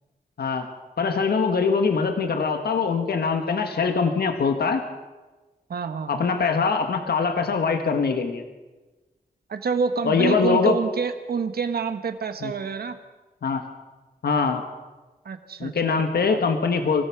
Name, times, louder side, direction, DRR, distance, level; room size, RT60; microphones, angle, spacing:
voice 1, 1.0-4.8 6.1-8.4 10.0-10.8 12.4-12.5 13.4-13.6 14.2-14.6 15.6-17.1, left 5 dB, 90° left, 6 dB, 1.6 m, -23 dB
voice 2, 5.7-6.3 9.5-13.0 15.2-16.4, right 5 dB, 75° right, 8 dB, 1.4 m, -28 dB
25.5 x 17.0 x 6.0 m, 1.2 s
wide cardioid pair, 170°, 16 cm